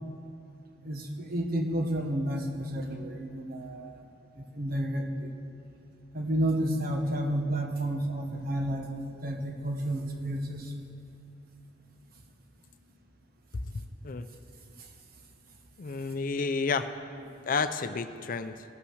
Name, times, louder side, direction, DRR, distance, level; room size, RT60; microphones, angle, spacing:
voice 1, 0.8-4.0 4.4-5.3 6.1-10.7, right 1 dB, 55° right, 3 dB, 1.3 m, -31 dB
voice 2, 13.7-14.3 15.8-16.9 17.5-18.6, left 4 dB, 50° left, 11 dB, 0.5 m, -31 dB
17.5 x 5.9 x 6.4 m, 2.7 s
head